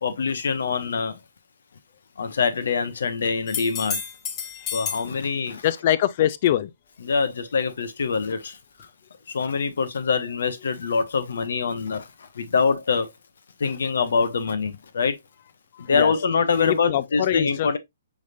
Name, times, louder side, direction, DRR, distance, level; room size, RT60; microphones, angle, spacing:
voice 1, 0.0-1.2 2.2-4.0 4.7-5.7 7.0-8.9 9.3-13.1 13.6-15.2 15.8-17.8, left 5 dB, 70° left, 0.9 m, -24 dB
sound 1, 3.5-5.1 8.8-8.9, left 7 dB, 25° left, 1.1 m, -31 dB
voice 2, 5.6-6.7 15.7-16.1 16.6-17.8, left 12 dB, 45° left, 0.5 m, -23 dB
6.2 x 3.4 x 2.5 m
hypercardioid pair, 135°, 0 cm